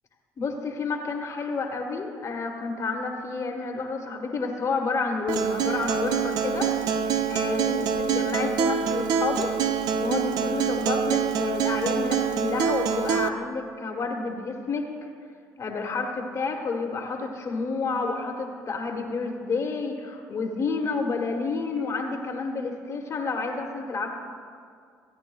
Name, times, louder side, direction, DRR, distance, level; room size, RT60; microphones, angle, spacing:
voice 1, 0.4-14.9 15.6-24.1, left 4 dB, 45° left, 1 dB, 1.4 m, -30 dB
Acoustic guitar, 5.3-13.3, right 7 dB, 65° right, 0.5 m, -25 dB
15.5 x 9.8 x 2.3 m, 2.2 s
hypercardioid pair, 60°, 7 cm